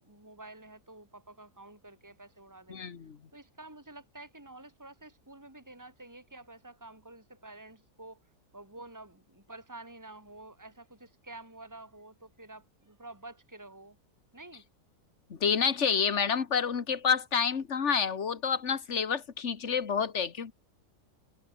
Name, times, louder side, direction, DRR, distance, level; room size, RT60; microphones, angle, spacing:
voice 1, 0.0-2.9 3.3-8.2 8.5-14.0 14.3-14.6, right 2 dB, 10° right, 4.1 m, -49 dB
voice 2, 2.7-3.2 15.3-20.5, left 6 dB, 50° left, 1.7 m, -29 dB
omnidirectional pair, 1.7 m